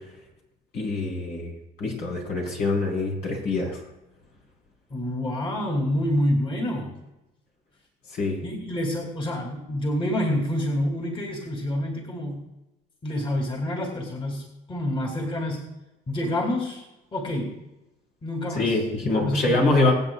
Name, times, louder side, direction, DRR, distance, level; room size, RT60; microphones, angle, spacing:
voice 1, 0.7-1.5 1.8-3.8 8.1-8.4 18.5-19.9, left 2 dB, 75° left, -1 dB, 5.0 m, -24 dB
voice 2, 4.9-7.0 8.4-12.5 13.0-15.7 16.1-16.8 17.1-17.6 18.2-19.9, left 1 dB, 30° left, 1 dB, 2.7 m, -28 dB
25.0 x 8.3 x 2.4 m, 0.95 s
cardioid pair, 110°, 17 cm